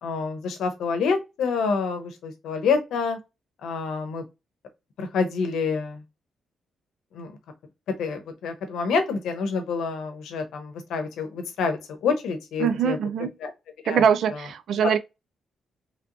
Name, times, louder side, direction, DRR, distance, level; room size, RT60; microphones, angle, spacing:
voice 1, 0.0-3.2 3.6-4.2 5.0-6.0 7.1-7.3 8.0-13.0 13.4-13.5 13.8-14.1 14.8-14.9, left 5 dB, 90° left, 0.8 m, -27 dB
voice 2, 12.6-13.3 13.9-15.0, right 7 dB, 65° right, 0.4 m, -22 dB
3.1 x 2.9 x 2.6 m
wide cardioid pair, 175°, 0 cm